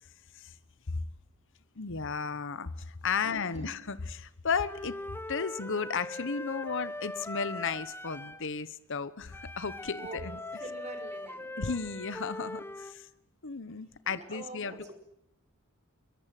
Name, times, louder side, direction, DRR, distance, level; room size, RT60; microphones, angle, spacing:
voice 1, 1.8-5.0 5.3-10.4 11.6-13.1 13.4-14.9, left 5 dB, 60° left, 14 dB, 1.0 m, -34 dB
voice 2, 3.2-3.8 10.0-11.6 14.0-14.9, right 2 dB, 35° right, 5 dB, 5.2 m, -45 dB
Wind instrument woodwind instrument, 4.6-8.5 9.3-13.0, left 2 dB, 10° left, 1.0 m, -41 dB
23.0 x 22.0 x 7.7 m, 0.81 s
head